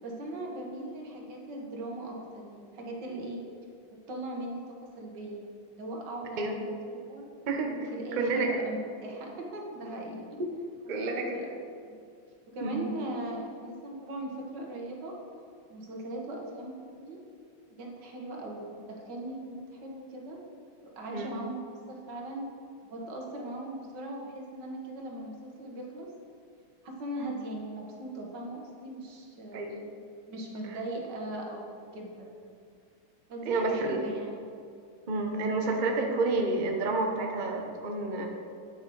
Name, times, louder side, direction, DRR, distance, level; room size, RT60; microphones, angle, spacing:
voice 1, 0.0-3.4 4.1-5.4 5.8-7.3 7.9-10.4 10.8-11.5 11.9-12.0 12.5-15.2 15.7-17.2 17.8-20.4 20.8-21.6 21.9-22.5 22.8-26.1 26.8-29.7 30.3-32.5 33.3-34.4, right 1 dB, 60° right, 0 dB, 1.9 m, -39 dB
voice 2, 7.5-7.9 8.2-8.5 10.9-11.4 12.6-12.9 21.1-21.3 29.5-29.8 30.7-30.8 33.5-34.0 35.1-38.3, right 3 dB, 85° right, 2 dB, 0.4 m, -29 dB
9.0 x 7.0 x 4.6 m, 2.4 s
omnidirectional pair, 2.3 m